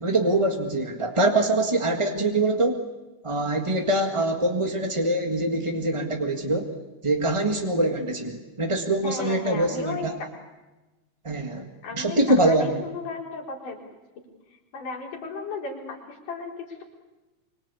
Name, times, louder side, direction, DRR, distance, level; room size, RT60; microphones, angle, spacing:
voice 1, 0.0-2.8 3.2-6.7 7.0-10.1 11.2-11.7 11.9-12.8, right 1 dB, 20° right, 3 dB, 0.9 m, -24 dB
voice 2, 9.0-10.3 11.8-13.8 14.7-16.8, left 4 dB, 75° left, 0 dB, 5.6 m, -35 dB
25.5 x 25.0 x 8.4 m, 1.1 s
omnidirectional pair, 3.8 m